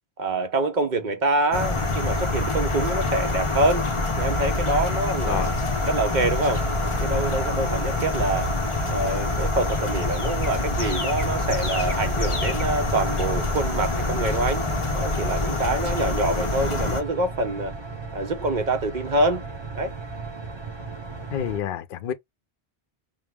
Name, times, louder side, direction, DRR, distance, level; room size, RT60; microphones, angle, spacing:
voice 1, 0.2-3.9 4.2-5.5 5.9-6.6 7.0-8.5 8.9-14.6 14.9-17.7 18.1-19.5 19.7-19.9, right 2 dB, 50° right, 0.8 m, -26 dB
sound 1, 1.5-17.0, left 2 dB, 35° left, 0.8 m, -26 dB
voice 2, 5.2-5.6 21.3-22.1, left 9 dB, 65° left, 0.7 m, -29 dB
sound 2, 6.3-21.6, right 4 dB, 25° right, 1.0 m, -37 dB
5.2 x 2.1 x 3.4 m
omnidirectional pair, 1.1 m